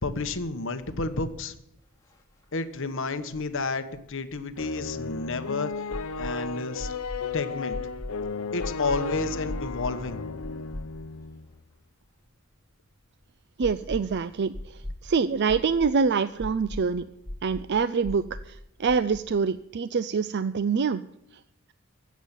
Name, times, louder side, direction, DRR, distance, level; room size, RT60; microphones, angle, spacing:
voice 1, 0.0-1.5 2.5-5.7 6.2-6.9 7.3-7.8 8.5-10.2, left 3 dB, 65° left, 10 dB, 1.2 m, -31 dB
sound 1, 2.1-2.2 2.4-2.5 4.1-5.3 5.9-6.4 6.8-7.3 7.7-8.2 8.6-9.0 9.5-10.0 10.4-11.2 11.5-11.6 13.6-14.2 14.5-15.0 15.5-16.0 16.4-16.9 17.2-17.7 18.0-18.5 18.9-19.2, left 1 dB, 15° left, 2.7 m, -38 dB
sound 2, 4.6-11.5, left 4 dB, 85° left, 0.8 m, -34 dB
voice 2, 13.6-14.5 15.0-17.1 17.4-21.0, right 5 dB, 55° right, 14 dB, 0.5 m, -25 dB
16.0 x 7.3 x 9.8 m, 0.80 s
head